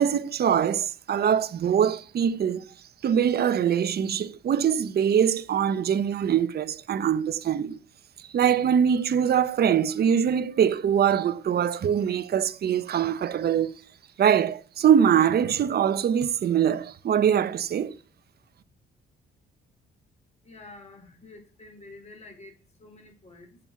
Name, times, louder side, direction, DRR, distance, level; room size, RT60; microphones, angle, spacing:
voice 1, 0.0-2.6 3.0-7.8 8.3-13.7 14.2-18.0, right 8 dB, 55° right, 0.8 m, -23 dB
voice 2, 20.4-23.6, left 2 dB, 35° left, 4.6 m, -48 dB
7.4 x 6.9 x 8.1 m
cardioid pair, 90°, 20 cm